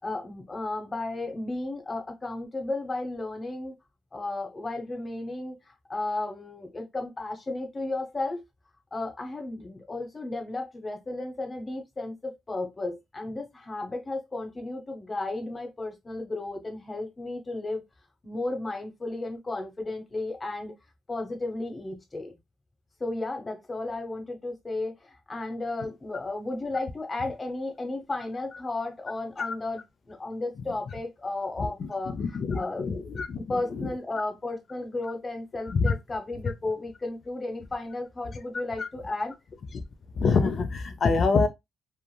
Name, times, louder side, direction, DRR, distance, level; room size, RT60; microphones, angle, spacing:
voice 1, 0.0-3.7 4.1-8.4 8.9-17.8 18.2-20.7 21.1-22.4 23.0-29.8 30.1-32.2 32.5-32.8 33.4-39.3, left 2 dB, 25° left, 0.9 m, -34 dB
voice 2, 31.6-33.4 33.7-33.9 35.7-35.9 38.8-38.9 40.2-41.5, left 4 dB, 50° left, 0.5 m, -26 dB
3.2 x 2.4 x 2.2 m
cardioid pair, 90°, 0 cm